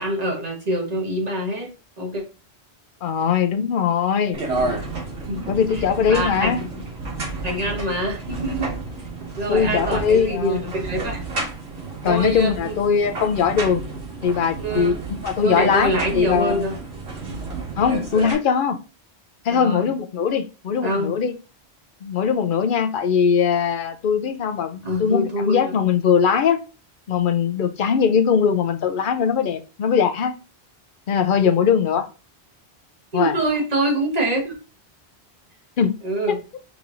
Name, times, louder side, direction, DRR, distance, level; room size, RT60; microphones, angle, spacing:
voice 1, 0.0-1.7 2.0-2.2 5.3-6.7 7.4-8.8 9.4-11.2 12.0-12.7 14.6-15.0 15.4-16.8 19.5-19.9 20.8-21.1 24.8-25.8 33.1-34.5 36.0-36.4, right 1 dB, 40° right, 1.3 m, -25 dB
voice 2, 3.0-4.4 5.5-6.6 9.5-10.6 12.0-13.8 14.2-16.6 17.8-18.8 19.4-21.3 22.0-26.6 27.1-30.3 31.1-32.1 33.1-33.3 35.8-36.0 36.3-36.4, left 7 dB, 60° left, 0.6 m, -20 dB
sound 1, 4.3-18.3, right 3 dB, 75° right, 1.5 m, -31 dB
4.9 x 3.0 x 2.5 m
omnidirectional pair, 1.1 m